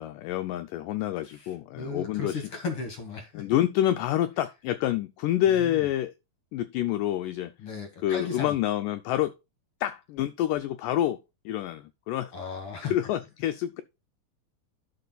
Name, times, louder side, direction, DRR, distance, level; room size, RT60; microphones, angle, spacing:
voice 1, 0.0-2.4 3.3-6.1 6.5-7.5 8.0-9.3 9.8-11.2 11.5-12.3 12.9-13.8, left 12 dB, 80° left, 1.9 m, -27 dB
voice 2, 1.7-3.5 5.5-5.8 7.6-8.5 12.3-13.0, left 5 dB, 50° left, 1.8 m, -35 dB
12.0 x 4.6 x 3.9 m
omnidirectional pair, 4.3 m